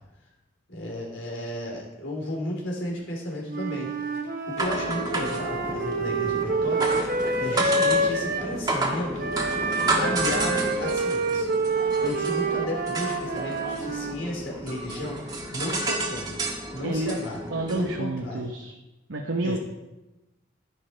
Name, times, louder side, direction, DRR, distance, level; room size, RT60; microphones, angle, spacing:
voice 1, 0.7-3.9 4.5-7.0 7.4-9.3 9.9-18.5 19.4-19.6, left 1 dB, 85° left, -1 dB, 3.6 m, -34 dB
Wind instrument woodwind instrument, 3.5-8.5 9.2-14.2, right 3 dB, 50° right, 1.1 m, -27 dB
sound 1, 4.6-18.0, right 1 dB, 20° right, 1.4 m, -31 dB
voice 2, 16.8-17.2 17.5-18.7 19.1-19.6, right 2 dB, 85° right, 2 dB, 0.9 m, -29 dB
11.0 x 10.5 x 4.5 m, 1.0 s
head